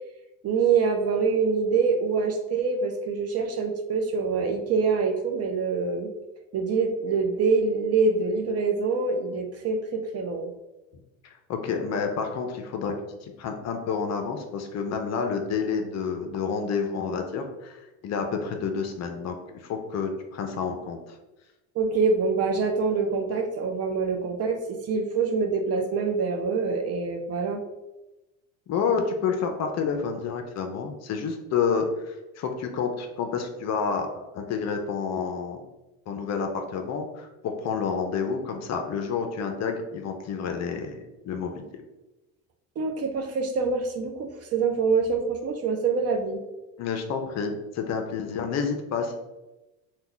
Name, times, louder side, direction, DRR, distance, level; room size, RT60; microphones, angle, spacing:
voice 1, 0.4-6.1 6.5-10.5 21.8-27.6 42.8-46.4, right 4 dB, 40° right, 5 dB, 0.5 m, -25 dB
voice 2, 11.5-12.9 13.2-21.2 28.7-35.6 36.1-41.8 46.8-49.1, left 5 dB, 45° left, 5 dB, 0.5 m, -29 dB
2.9 x 2.2 x 3.7 m, 1.0 s
supercardioid pair, 100°, 39 cm